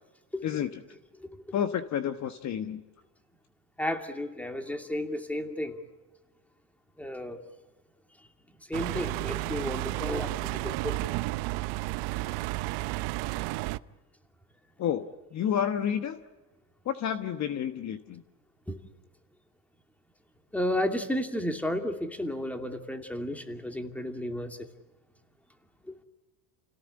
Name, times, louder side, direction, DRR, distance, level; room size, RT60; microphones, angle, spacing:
voice 1, 0.4-0.8 1.5-2.8 14.8-16.2 16.8-18.2, left 9 dB, 35° left, 9 dB, 1.3 m, -30 dB
voice 2, 3.8-5.8 7.0-7.4 8.7-10.3 10.6-11.0 18.7-18.8 20.5-24.6, left 1 dB, 5° left, 6 dB, 2.5 m, -32 dB
sound 1, 8.7-13.8, right 20 dB, 60° right, 0.8 m, -32 dB
30.0 x 17.5 x 9.9 m, 1.2 s
supercardioid pair, 120°, 47 cm